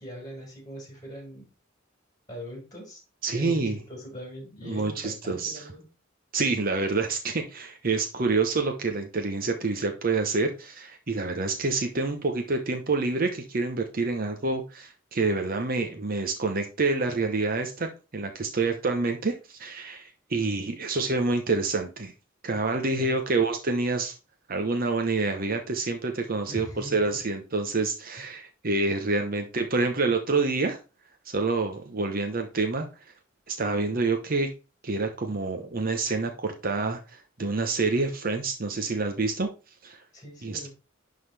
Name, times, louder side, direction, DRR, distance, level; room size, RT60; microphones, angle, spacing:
voice 1, 0.0-1.5 2.3-3.0 3.3-5.8 23.0-23.2 26.5-27.2 28.2-28.3 40.1-40.7, equal, 20° left, -2 dB, 4.6 m, -41 dB
voice 2, 3.2-3.8 4.6-5.6 6.3-22.1 22.4-24.1 24.5-30.8 31.3-32.9 33.5-34.5 34.8-39.5 39.8-40.0 40.4-40.7, right 3 dB, 45° right, 5 dB, 0.9 m, -27 dB
11.0 x 3.9 x 3.3 m, 0.31 s
head